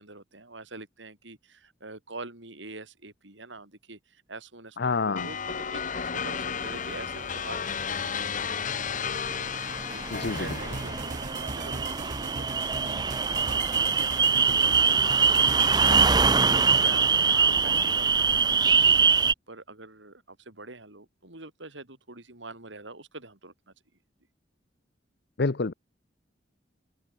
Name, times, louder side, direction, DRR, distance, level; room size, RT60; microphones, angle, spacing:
voice 1, 0.0-7.7 9.9-23.7, right 3 dB, 80° right, 4.7 m, -45 dB
voice 2, 4.8-5.3 10.1-10.5 25.4-25.7, left 4 dB, 60° left, 0.8 m, -27 dB
sound 1, 5.2-11.4, left 6 dB, 45° left, 1.3 m, -33 dB
sound 2, 9.3-19.3, right 5 dB, 25° right, 0.8 m, -23 dB
sound 3, 10.1-16.9, right 3 dB, 45° right, 1.4 m, -39 dB
head